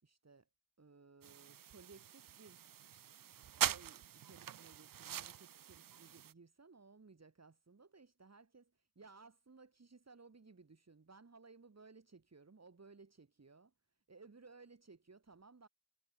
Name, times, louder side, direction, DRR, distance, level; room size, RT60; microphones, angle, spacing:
voice 1, 0.0-0.5 0.8-2.8 3.6-13.7 14.1-15.7, right 4 dB, 45° right, 5.9 m, -60 dB
sound 1, 1.2-6.3, right 10 dB, 60° right, 0.5 m, -42 dB
wide cardioid pair, 110°, 38 cm